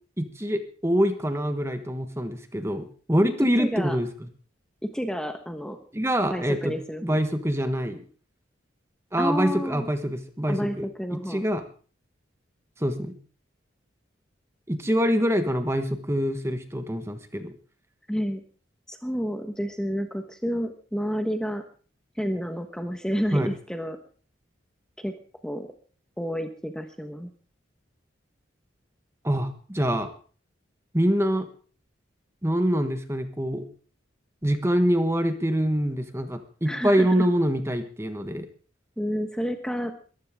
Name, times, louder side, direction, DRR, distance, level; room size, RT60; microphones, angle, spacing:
voice 1, 0.2-4.3 5.9-6.8 7.0-8.0 9.1-11.6 12.8-13.2 14.7-17.5 23.3-23.5 29.2-30.1 30.9-31.5 32.4-33.7 34.4-38.5, equal, 15° right, 8 dB, 1.3 m, -25 dB
voice 2, 3.6-4.0 4.8-5.8 6.3-7.2 9.2-9.9 10.5-11.4 18.1-18.4 18.9-21.6 22.2-24.0 25.0-25.1 25.4-25.7 26.2-27.3 36.6-37.1 39.0-39.9, equal, 5° left, 6 dB, 1.2 m, -30 dB
22.0 x 14.5 x 3.7 m, 0.41 s
head